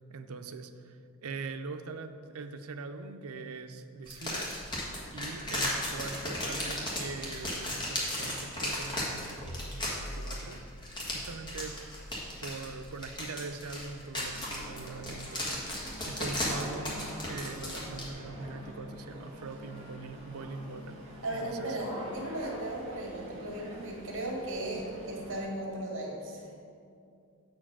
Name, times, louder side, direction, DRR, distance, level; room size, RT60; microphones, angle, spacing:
voice 1, 0.1-4.5 5.1-10.6 11.1-11.8 12.4-21.0 21.3-21.8, right 3 dB, 90° right, 8 dB, 0.5 m, -42 dB
sound 1, 4.1-18.1, left 1 dB, 20° left, 1.4 m, -36 dB
sound 2, 14.2-25.4, equal, 30° right, 1.6 m, -46 dB
voice 2, 21.2-26.5, right 1 dB, 65° right, -1 dB, 1.8 m, -36 dB
8.1 x 4.4 x 6.0 m, 2.5 s
head